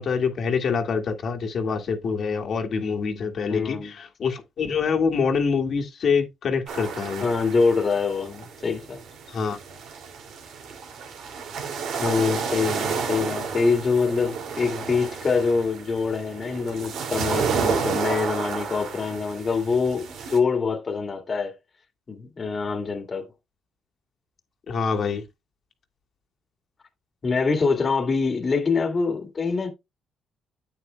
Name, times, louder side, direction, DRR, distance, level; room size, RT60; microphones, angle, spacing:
voice 1, 0.0-7.3 9.3-9.6 24.7-25.2, left 5 dB, 60° left, 1.9 m, -25 dB
voice 2, 3.5-3.9 7.2-9.0 12.0-21.5 22.1-23.3 27.2-29.7, left 4 dB, 40° left, 1.9 m, -25 dB
sound 1, 6.7-20.4, right 5 dB, 80° right, 2.5 m, -31 dB
9.0 x 8.9 x 2.2 m
cardioid pair, 90°, 0 cm